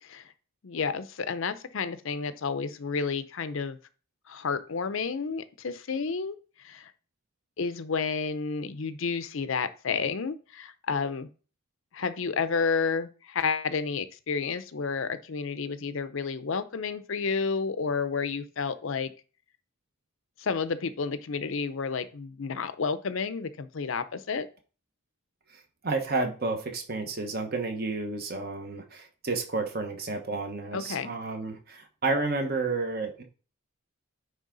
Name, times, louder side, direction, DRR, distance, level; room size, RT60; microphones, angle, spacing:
voice 1, 0.0-0.3 0.6-3.8 4.3-6.9 7.6-11.3 11.9-19.1 20.4-24.5 30.7-31.1, left 5 dB, 65° left, 12 dB, 0.6 m, -31 dB
voice 2, 25.5-33.2, right 3 dB, 45° right, 5 dB, 1.1 m, -31 dB
9.3 x 3.5 x 3.8 m, 0.37 s
head